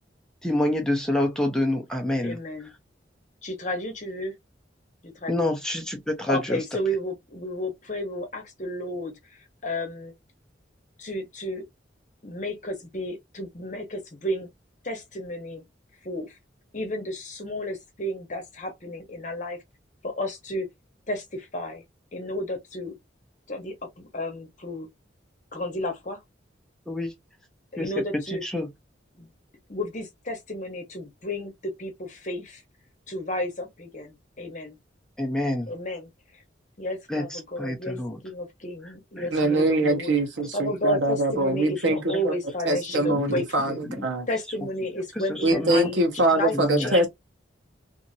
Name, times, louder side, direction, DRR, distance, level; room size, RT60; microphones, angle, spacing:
voice 1, 0.4-2.4 5.3-6.6 26.9-27.1 27.8-28.7 35.2-35.7 37.1-38.2 39.2-39.6 43.1-43.4 43.9-44.0 45.3-45.9 46.5-47.0, left 1 dB, 5° left, 0.6 m, -28 dB
voice 2, 2.2-2.7 3.4-4.3 5.0-5.5 6.3-10.1 11.0-11.6 12.2-14.5 14.8-15.6 16.0-16.3 16.7-19.6 20.0-20.7 21.1-21.8 22.1-22.9 23.5-24.9 25.5-26.2 27.7-28.4 29.1-29.3 29.7-32.6 33.1-34.8 35.7-36.1 36.8-38.0 38.2-40.1 40.5-43.8 44.3-46.0 46.3-47.1, left 1 dB, 40° left, 0.9 m, -32 dB
voice 3, 39.3-42.3 42.7-44.3 45.4-47.1, right 2 dB, 75° right, 1.0 m, -23 dB
2.7 x 2.5 x 2.6 m
head